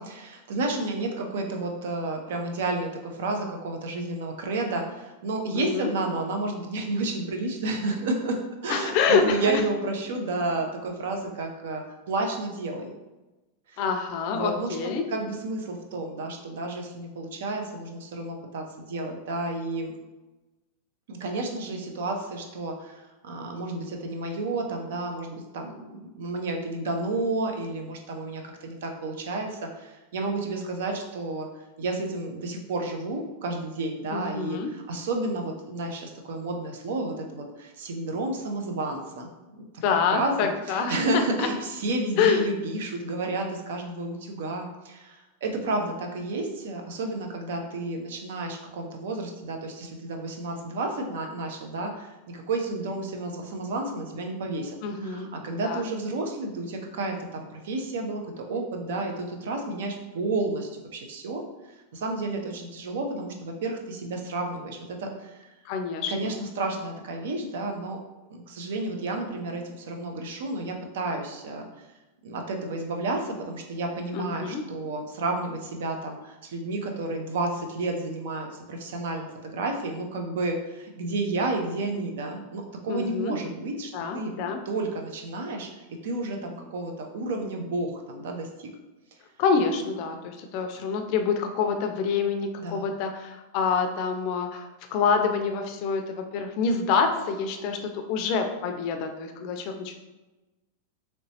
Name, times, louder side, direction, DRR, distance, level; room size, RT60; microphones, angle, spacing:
voice 1, 0.0-12.9 13.7-13.8 14.3-14.8 15.1-19.9 21.1-31.5 31.8-34.6 34.9-39.6 40.1-61.4 61.9-65.4 66.1-68.0 68.3-71.7 72.2-84.3 84.7-88.7 92.6-92.9, right 2 dB, 70° right, 3 dB, 0.6 m, -31 dB
voice 2, 5.5-5.9 8.7-9.6 13.8-15.0 34.1-34.7 39.8-41.5 42.2-42.5 54.8-55.3 55.6-55.8 65.6-66.3 74.1-74.6 82.9-83.4 83.9-84.6 89.4-99.9, left 5 dB, 40° left, 5 dB, 0.4 m, -27 dB
3.1 x 3.0 x 2.8 m, 1.1 s
supercardioid pair, 160°, 0 cm